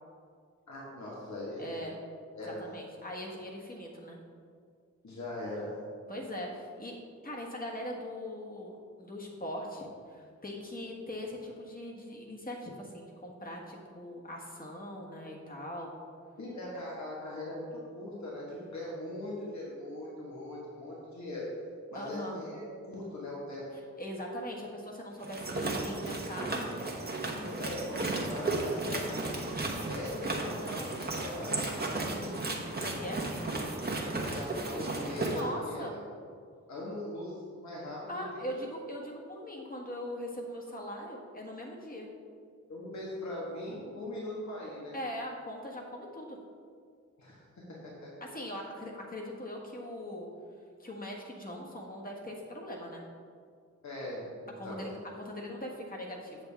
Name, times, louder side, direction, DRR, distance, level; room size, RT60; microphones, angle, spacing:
voice 1, 0.7-1.8 2.3-2.6 5.0-5.7 16.4-21.5 21.9-23.7 27.3-28.0 28.3-31.6 31.9-32.5 32.8-32.9 34.2-36.0 36.7-38.5 42.7-45.0 47.2-48.2 53.8-54.9, left 1 dB, 70° left, -6 dB, 1.6 m, -40 dB
voice 2, 1.6-2.0 2.5-4.2 6.1-6.9 7.2-15.9 21.9-22.4 24.0-26.7 32.7-33.2 35.3-36.0 38.1-42.1 44.9-46.4 48.2-50.3 50.8-53.0 54.6-56.4, left 1 dB, 30° left, -2 dB, 1.5 m, -41 dB
sound 1, 25.2-35.4, right 2 dB, 35° right, 1.2 m, -34 dB
8.1 x 6.8 x 3.5 m, 2.1 s
wide cardioid pair, 85°, 30 cm